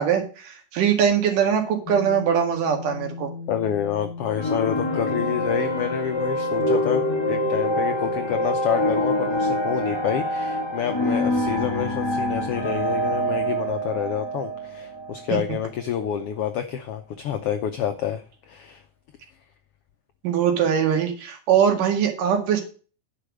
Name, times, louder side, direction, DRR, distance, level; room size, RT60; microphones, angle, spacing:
voice 1, 0.0-3.3 15.3-15.4 20.2-22.6, right 8 dB, 80° right, 4 dB, 3.6 m, -22 dB
sound 1, 1.9-10.9, left 4 dB, 55° left, 1.3 m, -39 dB
voice 2, 3.5-18.8, left 9 dB, 90° left, 8 dB, 1.3 m, -28 dB
sound 2, 4.3-15.6, equal, 10° left, 1.4 m, -25 dB
10.0 x 5.6 x 6.3 m, 0.37 s
omnidirectional pair, 3.7 m